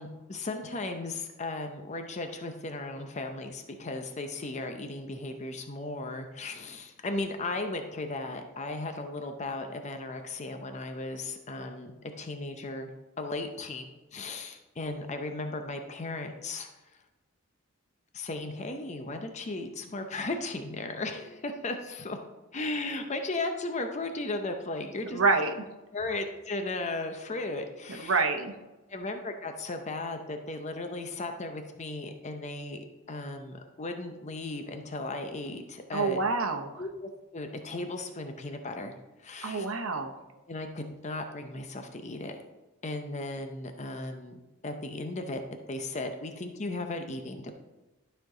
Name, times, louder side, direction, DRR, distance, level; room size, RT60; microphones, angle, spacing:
voice 1, 0.0-12.9 13.2-16.7 18.1-22.2 22.5-25.2 25.9-28.2 28.9-36.2 36.8-39.0 39.2-39.7 40.5-42.4 42.8-45.4 45.7-47.5, left 2 dB, 35° left, 6 dB, 0.6 m, -36 dB
voice 2, 25.0-25.6 27.9-28.5 35.9-36.8 39.4-40.1, right 4 dB, 90° right, 5 dB, 0.9 m, -27 dB
12.0 x 4.5 x 3.8 m, 1.1 s
head